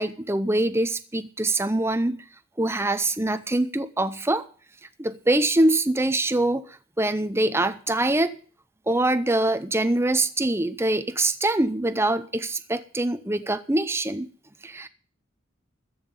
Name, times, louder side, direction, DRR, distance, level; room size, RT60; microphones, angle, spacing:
voice 1, 0.0-2.2 2.6-4.4 5.0-6.6 7.0-8.3 8.9-14.3 14.6-14.9, right 2 dB, 10° right, 0.7 m, -24 dB
14.0 x 5.8 x 9.6 m
head